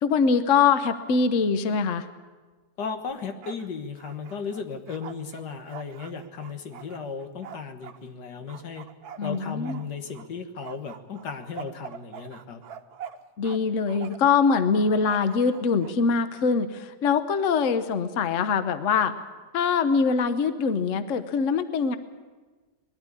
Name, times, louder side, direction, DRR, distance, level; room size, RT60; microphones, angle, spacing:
voice 1, 0.0-2.1 9.2-9.8 13.4-19.1 19.5-22.0, left 5 dB, 55° left, 10 dB, 1.2 m, -23 dB
voice 2, 2.8-8.9 9.2-12.6, left 5 dB, 85° left, 6 dB, 2.0 m, -35 dB
Bark, 3.1-3.7 4.0-8.0 8.5-10.3 10.6-13.6 13.9-14.4 15.0-15.9, right 8 dB, 70° right, 1.4 m, -44 dB
20.5 x 13.0 x 9.8 m, 1.3 s
omnidirectional pair, 1.7 m